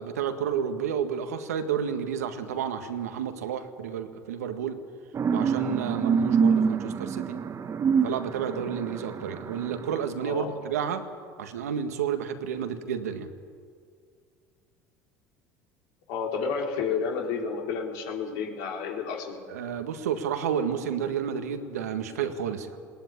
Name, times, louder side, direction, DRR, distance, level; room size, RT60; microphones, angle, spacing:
voice 1, 0.0-4.8 5.3-7.4 8.0-11.0 11.4-13.3 19.5-22.7, right 8 dB, 90° right, 7 dB, 1.8 m, -31 dB
sound 1, 5.1-9.9, right 6 dB, 35° right, 1.6 m, -26 dB
voice 2, 10.2-10.6 16.1-19.4, left 5 dB, 70° left, 2 dB, 4.3 m, -31 dB
19.5 x 19.0 x 9.9 m, 2.2 s
hypercardioid pair, 80°, 8 cm